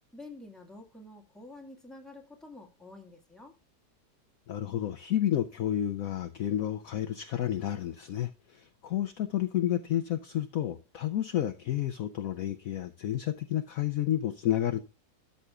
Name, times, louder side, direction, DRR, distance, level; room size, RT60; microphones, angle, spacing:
voice 1, 0.1-3.6, left 2 dB, ahead, 1.6 m, -48 dB
voice 2, 4.5-14.8, left 11 dB, 65° left, 0.9 m, -30 dB
13.0 x 6.7 x 2.4 m
omnidirectional pair, 1.9 m